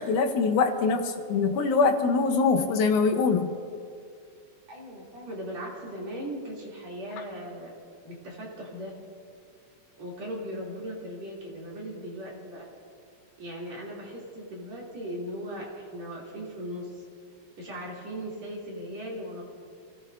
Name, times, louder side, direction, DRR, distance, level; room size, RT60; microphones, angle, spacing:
voice 1, 0.0-3.5, left 4 dB, 75° left, 5 dB, 2.3 m, -23 dB
voice 2, 4.7-7.7 8.0-8.9 10.0-12.6 13.4-17.0 17.6-19.4, equal, 60° right, -4 dB, 4.1 m, -38 dB
28.5 x 17.0 x 2.6 m, 2.3 s
omnidirectional pair, 3.6 m